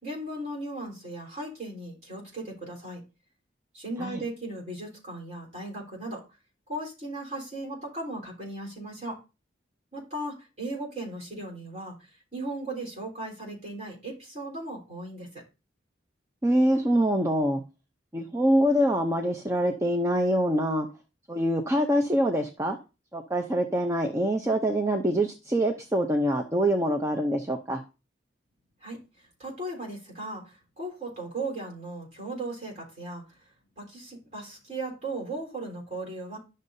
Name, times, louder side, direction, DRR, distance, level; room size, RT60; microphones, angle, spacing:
voice 1, 0.0-3.0 3.7-6.2 6.7-9.2 9.9-12.0 12.3-15.3 28.8-29.0 29.4-33.2 33.8-36.4, right 2 dB, 40° right, -2 dB, 3.7 m, -37 dB
voice 2, 16.4-17.6 18.1-20.9 21.3-22.8 23.1-27.8, equal, 15° right, 3 dB, 0.6 m, -25 dB
11.5 x 6.5 x 2.7 m, 0.29 s
head